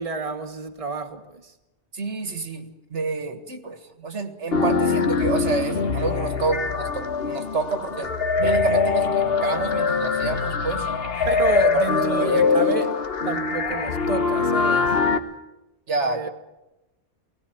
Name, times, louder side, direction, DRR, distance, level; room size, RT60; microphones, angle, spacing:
voice 1, 0.0-1.5 11.2-12.9 13.2-15.0 16.0-16.3, right 3 dB, 30° right, 1.7 m, -30 dB
voice 2, 1.9-8.1 8.4-10.9 11.2-12.8 15.9-16.3, right 3 dB, 85° right, 2.1 m, -29 dB
sound 1, 4.5-15.2, left 4 dB, 60° left, 1.5 m, -23 dB
20.5 x 16.5 x 9.2 m
omnidirectional pair, 1.2 m